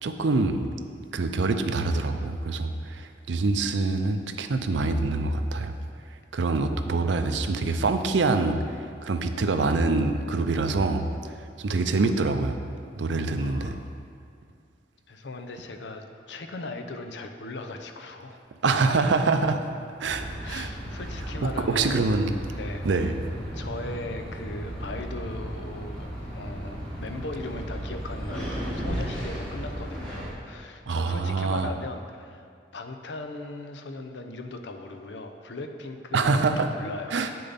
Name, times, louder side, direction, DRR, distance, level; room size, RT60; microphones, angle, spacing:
voice 1, 0.0-0.6 1.1-5.7 6.3-8.6 9.0-12.6 13.0-13.8 18.6-19.6 20.0-20.7 21.4-22.3 22.8-23.2 30.9-31.7 36.1-36.7 37.1-37.3, right 3 dB, 85° right, 8 dB, 0.5 m, -25 dB
voice 2, 13.4-14.0 15.1-18.4 20.4-22.0 22.5-23.1 23.5-32.4 32.7-37.2, left 2 dB, 80° left, 5 dB, 0.6 m, -38 dB
sound 1, 20.0-30.3, equal, 5° left, 1.9 m, -35 dB
8.5 x 6.7 x 4.1 m, 2.3 s
head